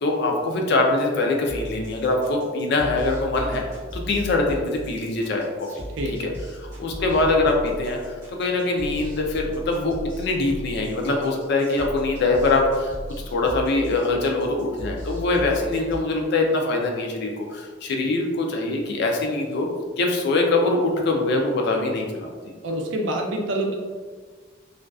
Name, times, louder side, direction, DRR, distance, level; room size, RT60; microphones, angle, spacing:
voice 1, 0.0-3.6 3.9-5.7 6.1-6.3 6.8-12.9 13.3-19.7 20.0-22.3, left 2 dB, 55° left, 1 dB, 0.4 m, -23 dB
sound 1, 1.5-16.0, equal, 15° right, 1.2 m, -37 dB
voice 2, 5.9-6.4 22.6-23.8, right 1 dB, 65° right, 1 dB, 0.4 m, -27 dB
2.4 x 2.3 x 2.3 m, 1.4 s
head